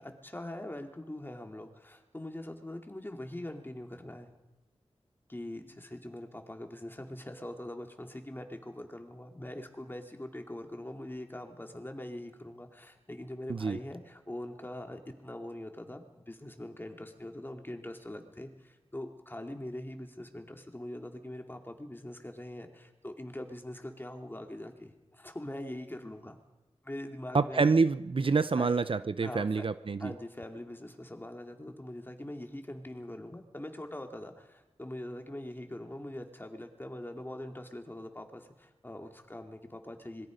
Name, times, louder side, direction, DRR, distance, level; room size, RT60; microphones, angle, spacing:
voice 1, 0.0-4.3 5.3-26.4 26.8-27.7 28.6-28.7 29.2-29.5 30.0-40.3, left 1 dB, 20° left, 4 dB, 2.6 m, -43 dB
voice 2, 27.3-30.1, right 4 dB, 55° right, 13 dB, 0.7 m, -27 dB
26.0 x 21.5 x 5.2 m, 1.0 s
wide cardioid pair, 75°, 11 cm